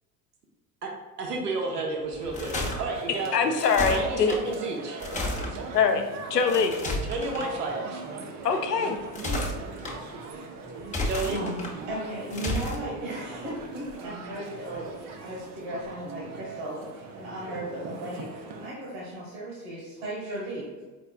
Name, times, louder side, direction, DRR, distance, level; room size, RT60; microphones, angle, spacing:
voice 1, 1.2-3.3 3.9-5.0 5.4-5.7 6.4-6.5 7.0-8.0 11.0-11.4, right 3 dB, 80° right, 1 dB, 0.9 m, -32 dB
sound 1, 2.1-2.8 3.6-4.4 5.0-5.5 6.5-7.5 9.0-9.9 10.8-11.7 12.3-12.8, left 2 dB, 15° left, 0.9 m, -31 dB
sound 2, 2.5-18.7, right 4 dB, 35° right, 0.6 m, -40 dB
voice 2, 3.3-4.3 5.7-6.0 6.3-6.7 8.4-9.0, left 5 dB, 85° left, 6 dB, 0.6 m, -23 dB
voice 3, 11.3-20.8, right 1 dB, 60° right, -5 dB, 1.4 m, -36 dB
4.2 x 4.2 x 2.2 m, 1.3 s
figure-of-eight pair, 70°, 47 cm